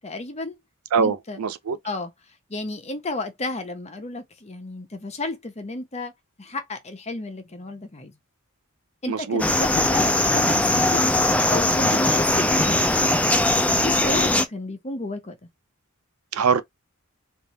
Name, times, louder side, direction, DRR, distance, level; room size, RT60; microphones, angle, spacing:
voice 1, 0.0-0.6 1.0-1.4 1.8-2.1 2.5-6.1 6.4-8.2 9.0-11.0 11.5-15.4, left 2 dB, 30° left, 0.8 m, -32 dB
voice 2, 0.9-1.8 9.1-9.4 16.3-16.6, right 6 dB, 80° right, 0.5 m, -23 dB
sound 1, 9.4-14.5, left 1 dB, 5° left, 0.4 m, -20 dB
3.5 x 2.6 x 3.0 m
head